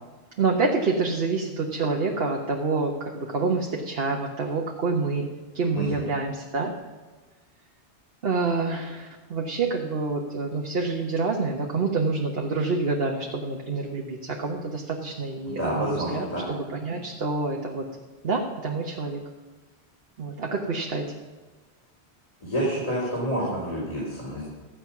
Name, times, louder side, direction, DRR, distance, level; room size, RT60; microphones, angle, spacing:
voice 1, 0.4-5.3 5.5-6.7 8.2-17.9 18.2-19.2 20.2-21.1, right 3 dB, 60° right, 0 dB, 1.3 m, -27 dB
voice 2, 5.7-6.1 15.5-16.4 22.4-24.4, right 1 dB, 35° left, -6 dB, 3.8 m, -28 dB
13.5 x 8.8 x 5.9 m, 1.3 s
omnidirectional pair, 1.1 m